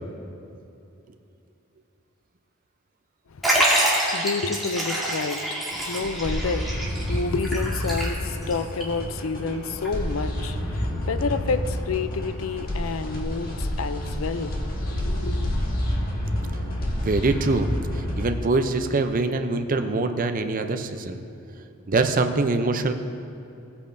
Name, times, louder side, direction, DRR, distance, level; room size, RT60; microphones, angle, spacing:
voice 1, 3.3-15.5, left 4 dB, 70° left, 0.5 m, -30 dB
Liquid, 3.4-8.5 8.8-8.9 9.8-9.9, right 1 dB, ahead, 2.0 m, -26 dB
sound 1, 5.7-18.3, left 1 dB, 45° left, 1.5 m, -29 dB
voice 2, 17.0-17.7 18.2-21.2 21.9-22.9, right 3 dB, 40° right, 0.5 m, -23 dB
17.0 x 8.5 x 2.6 m
head